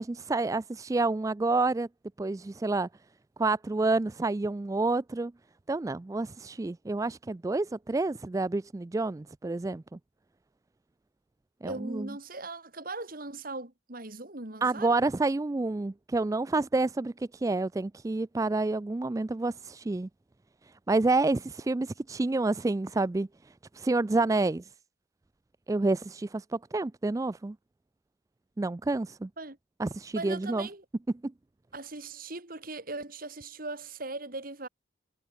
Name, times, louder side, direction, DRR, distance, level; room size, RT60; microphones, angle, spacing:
voice 1, 0.0-1.9 2.2-2.9 3.4-5.3 5.7-9.8 11.6-12.1 14.6-20.1 20.9-23.3 23.7-24.7 25.7-27.6 28.6-29.3 29.8-30.7, right 3 dB, 15° right, 0.3 m, -28 dB
voice 2, 11.6-15.0 29.4-29.6 30.1-30.8 31.7-34.7, right 2 dB, 45° right, 3.0 m, -39 dB
head